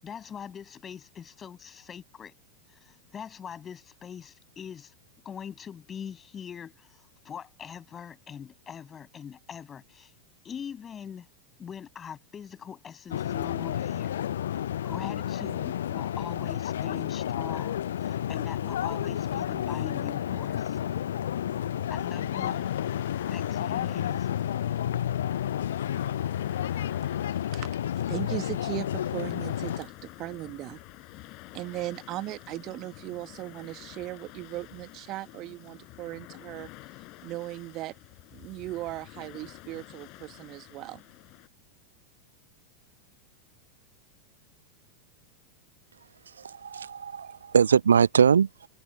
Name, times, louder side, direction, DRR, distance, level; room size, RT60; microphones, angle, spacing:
voice 1, 0.0-2.3 2.8-4.9 5.2-10.1 10.4-11.3 11.6-14.2 14.5-20.8 21.9-22.7 23.3-24.3, left 8 dB, 20° left, 7.8 m, -42 dB
sound 1, 13.1-29.8, left 10 dB, 60° left, 0.6 m, -31 dB
sound 2, 21.9-41.5, left 23 dB, 40° left, 6.6 m, -49 dB
voice 2, 27.3-30.8 31.5-36.7 37.2-37.9 38.3-41.0, right 17 dB, 35° right, 1.4 m, -38 dB
voice 3, 46.4-48.7, right 7 dB, 70° right, 0.4 m, -22 dB
figure-of-eight pair, 90°, 0 cm